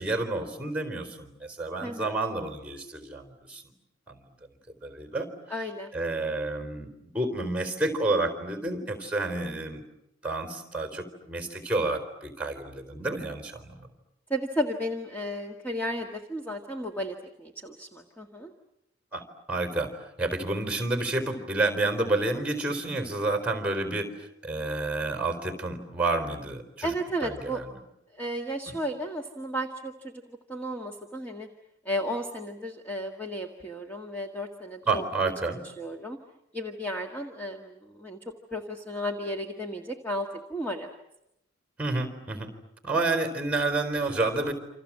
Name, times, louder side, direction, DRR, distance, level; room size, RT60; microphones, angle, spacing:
voice 1, 0.0-3.6 4.1-4.2 4.8-5.3 5.9-6.9 7.1-9.8 10.2-13.9 19.1-19.2 19.5-19.9 20.2-24.1 24.4-26.9 27.2-27.7 28.7-28.8 34.9-35.6 41.8-42.5 42.8-44.5, right 2 dB, 5° right, 8 dB, 4.1 m, -29 dB
voice 2, 1.8-2.2 5.5-5.9 14.3-18.5 26.8-27.6 28.1-31.5 31.8-35.0 35.4-35.5 35.8-36.2 36.5-38.2 38.5-40.9, equal, 10° left, 2 dB, 1.6 m, -33 dB
28.5 x 27.5 x 7.5 m, 0.82 s
head